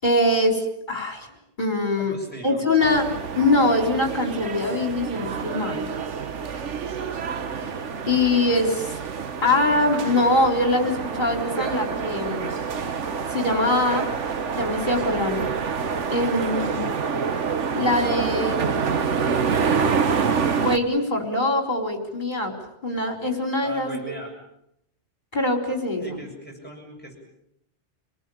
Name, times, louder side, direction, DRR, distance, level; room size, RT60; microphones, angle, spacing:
voice 1, 0.0-0.6 0.9-1.3 1.6-2.1 2.4-3.1 3.4-5.9 8.1-9.0 9.4-12.6 13.3-14.0 14.6-15.5 16.1-16.8 17.7-18.9 20.6-22.5 22.8-24.2 25.3-26.1, left 2 dB, 40° left, 3 dB, 4.3 m, -23 dB
voice 2, 2.1-2.6 23.6-24.3 26.0-27.2, right 1 dB, 10° left, -1 dB, 7.2 m, -39 dB
sound 1, 2.8-20.8, right 6 dB, 85° right, 1.5 m, -27 dB
27.5 x 18.5 x 8.6 m, 0.77 s
omnidirectional pair, 1.2 m